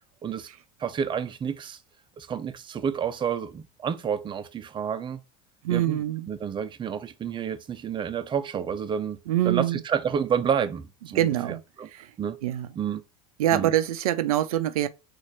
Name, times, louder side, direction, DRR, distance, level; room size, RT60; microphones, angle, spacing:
voice 1, 0.8-1.8 2.2-5.2 5.7-6.0 6.3-9.2 9.4-11.9 12.2-12.4 12.8-13.0 13.5-13.7, right 7 dB, 25° right, 0.6 m, -29 dB
voice 2, 5.6-6.3 9.3-9.8 11.1-11.6 11.9-12.1 12.4-12.7 13.4-14.9, right 12 dB, 85° right, 0.5 m, -24 dB
4.3 x 2.6 x 4.4 m
hypercardioid pair, 95°, 18 cm